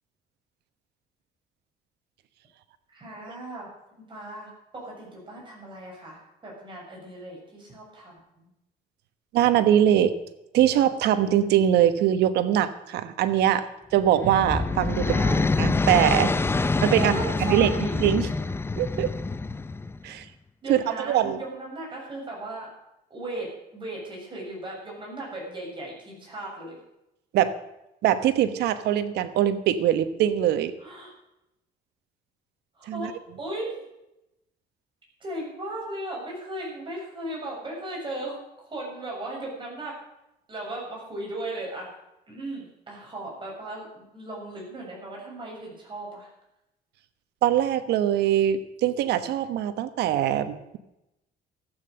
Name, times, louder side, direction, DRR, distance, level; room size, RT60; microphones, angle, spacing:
voice 1, 2.9-3.7 4.1-8.5 15.0-15.4 17.0-18.1 20.6-22.7 23.1-26.8 30.8-31.1 32.7-33.7 35.2-38.4 38.6-39.9 40.5-41.9 42.3-46.3, right 2 dB, 30° right, -2 dB, 7.2 m, -36 dB
voice 2, 9.3-10.1 10.5-13.7 13.9-15.0 15.6-16.3 16.8-18.3 18.8-19.1 20.0-20.3 20.7-21.4 27.3-27.5 28.0-30.7 32.9-33.1 47.4-50.8, right 11 dB, 75° right, 12 dB, 1.1 m, -22 dB
sound 1, 14.0-20.1, left 3 dB, 15° left, 0.5 m, -26 dB
14.0 x 8.9 x 7.8 m, 0.88 s
cardioid pair, 110°, 17 cm